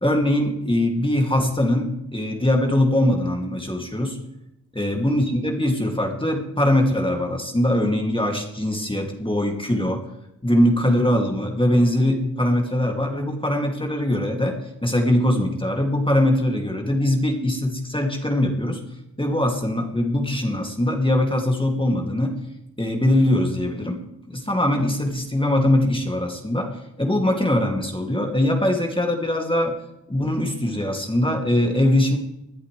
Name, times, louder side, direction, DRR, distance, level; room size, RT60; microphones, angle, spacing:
voice 1, 0.0-4.2 4.7-10.1 10.4-18.8 19.2-22.4 22.8-24.0 24.3-26.7 27.0-29.8 30.1-32.2, left 1 dB, 10° left, 1 dB, 2.6 m, -22 dB
20.5 x 11.0 x 3.4 m, 0.85 s
supercardioid pair, 50°, 41 cm